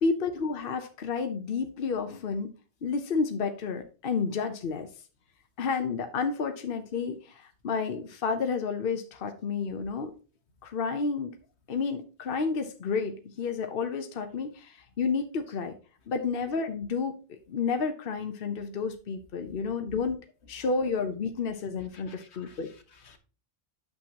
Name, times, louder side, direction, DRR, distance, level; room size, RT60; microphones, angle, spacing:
voice 1, 0.0-2.5 2.8-4.9 5.6-10.1 10.6-11.3 11.7-15.7 16.1-20.2 20.5-22.7, left 5 dB, 60° left, 1.0 m, -31 dB
voice 2, 21.9-23.2, left 3 dB, 80° left, 1.5 m, -53 dB
8.8 x 7.0 x 2.9 m
omnidirectional pair, 1.1 m